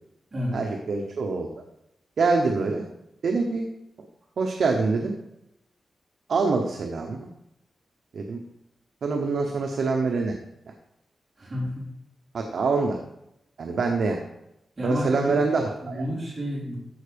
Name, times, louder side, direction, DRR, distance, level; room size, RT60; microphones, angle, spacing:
voice 1, 0.5-1.5 2.2-2.9 3.2-3.7 4.4-5.1 6.3-7.3 8.1-8.4 9.0-10.3 12.3-13.0 13.6-14.2 14.8-16.0, right 4 dB, 60° right, 3 dB, 0.9 m, -25 dB
voice 2, 11.4-11.9 14.8-15.4 15.8-16.8, equal, 25° right, -7 dB, 4.0 m, -30 dB
13.5 x 4.6 x 5.2 m, 0.84 s
wide cardioid pair, 155°, 0 cm